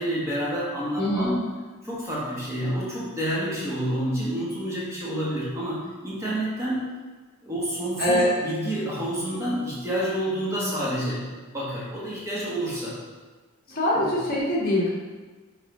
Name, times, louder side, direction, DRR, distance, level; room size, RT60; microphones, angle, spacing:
voice 1, 0.0-1.4 1.8-6.8 7.4-11.3 11.5-13.0 13.9-14.2, equal, 15° right, -7 dB, 1.2 m, -29 dB
voice 2, 1.0-1.4 8.0-8.3 13.7-14.9, left 1 dB, 45° left, -7 dB, 1.6 m, -23 dB
5.6 x 3.5 x 4.8 m, 1.3 s
head